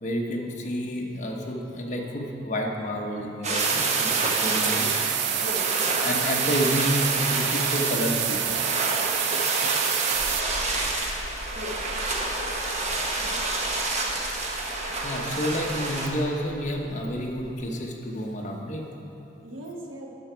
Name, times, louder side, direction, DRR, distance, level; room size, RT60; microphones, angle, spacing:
voice 1, 0.0-4.9 5.3-5.5 6.0-8.4 14.3-18.9, equal, 40° left, 0 dB, 1.0 m, -30 dB
sound 1, 3.4-16.1, right 2 dB, 35° right, 0.9 m, -28 dB
sound 2, 3.6-10.4, right 13 dB, 60° right, 0.3 m, -28 dB
voice 2, 4.6-4.9 5.3-6.0 11.5-11.8 19.4-20.1, equal, 85° right, -1 dB, 1.3 m, -38 dB
sound 3, 10.1-17.6, left 1 dB, 25° left, 1.6 m, -42 dB
12.0 x 5.9 x 4.5 m, 2.9 s
head